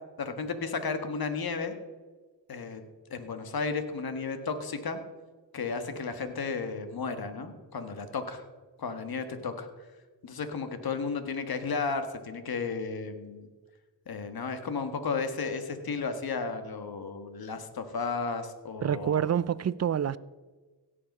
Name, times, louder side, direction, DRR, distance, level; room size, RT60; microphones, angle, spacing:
voice 1, 0.2-1.7 2.5-2.8 3.1-5.0 5.5-8.4 8.8-9.7 10.2-13.5 14.1-19.3, left 4 dB, 60° left, 1.6 m, -33 dB
voice 2, 18.8-20.2, right 9 dB, 40° right, 0.5 m, -27 dB
16.5 x 6.8 x 5.4 m
cardioid pair, 65°, 42 cm